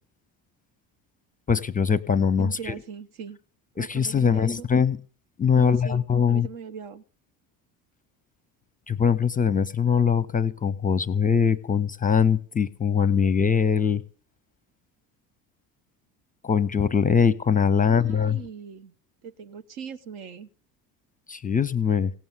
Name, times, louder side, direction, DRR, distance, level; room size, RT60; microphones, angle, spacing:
voice 1, 1.5-2.7 3.8-5.0 5.4-6.5 8.9-14.0 16.4-18.4 21.3-22.1, left 6 dB, 20° left, 0.6 m, -22 dB
voice 2, 2.4-3.4 3.8-4.7 5.5-7.0 17.8-18.9 19.2-20.5, right 7 dB, 65° right, 1.1 m, -40 dB
17.5 x 7.1 x 7.9 m
figure-of-eight pair, 60°, 48 cm